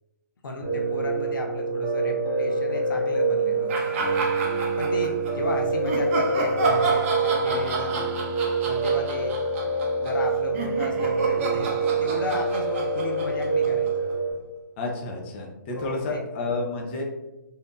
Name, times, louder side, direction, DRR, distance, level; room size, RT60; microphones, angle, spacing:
voice 1, 0.4-3.9 4.8-8.1 8.6-9.4 10.0-11.7 12.0-13.9 15.7-16.2, left 1 dB, 75° left, 2 dB, 0.6 m, -34 dB
Piano, 0.6-14.3, right 3 dB, 10° right, 1.1 m, -26 dB
sound 1, 3.7-5.3 5.8-14.1, right 3 dB, 40° right, 0.6 m, -30 dB
voice 2, 14.8-17.0, left 3 dB, 35° left, 0 dB, 0.6 m, -30 dB
3.3 x 2.7 x 2.4 m, 1.0 s
hypercardioid pair, 145°, 11 cm